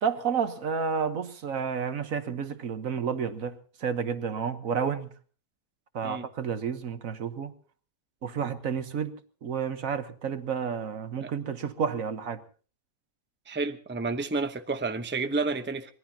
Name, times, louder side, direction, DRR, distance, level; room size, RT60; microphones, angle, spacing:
voice 1, 0.0-5.1 5.9-7.5 8.2-12.4, right 6 dB, 70° right, 1.6 m, -31 dB
voice 2, 13.5-15.9, right 3 dB, 10° right, 0.8 m, -30 dB
24.5 x 20.0 x 2.9 m
omnidirectional pair, 1.5 m